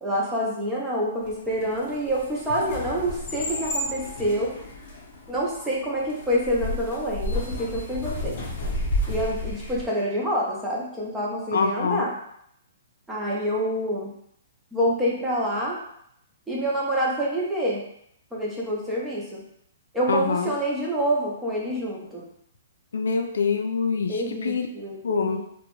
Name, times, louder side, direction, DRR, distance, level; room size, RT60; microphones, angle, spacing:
voice 1, 0.0-4.5 5.3-8.4 9.1-12.2 13.1-14.1 14.7-15.8 16.5-17.8 18.3-19.4 19.9-22.3 24.1-25.5, equal, 5° right, -5 dB, 0.5 m, -27 dB
sound 1, 1.3-9.9, left 1 dB, 35° left, 0.6 m, -32 dB
voice 2, 11.5-12.1 20.1-20.5 22.9-24.1 24.4-24.7 25.0-25.4, left 5 dB, 90° left, 5 dB, 0.3 m, -24 dB
2.7 x 2.1 x 2.9 m, 0.72 s
hypercardioid pair, 175°, 0 cm